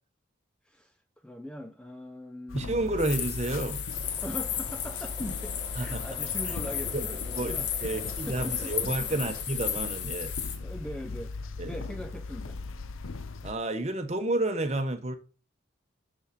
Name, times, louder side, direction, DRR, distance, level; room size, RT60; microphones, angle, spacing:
voice 1, 0.6-1.0 1.2-2.8 4.2-9.3 10.6-11.4 11.6-12.6, equal, 5° left, 0.4 m, -41 dB
sound 1, 2.5-13.5, left 3 dB, 90° left, 0.6 m, -39 dB
voice 2, 2.5-3.8 5.8-6.0 6.4-6.5 6.9-7.0 7.3-10.3 11.6-11.7 13.4-15.1, right 2 dB, 35° right, 0.9 m, -30 dB
sound 2, 3.0-10.6, left 9 dB, 60° left, 1.2 m, -34 dB
sound 3, 3.9-9.4, left 1 dB, 25° left, 1.7 m, -48 dB
7.1 x 6.2 x 5.2 m
head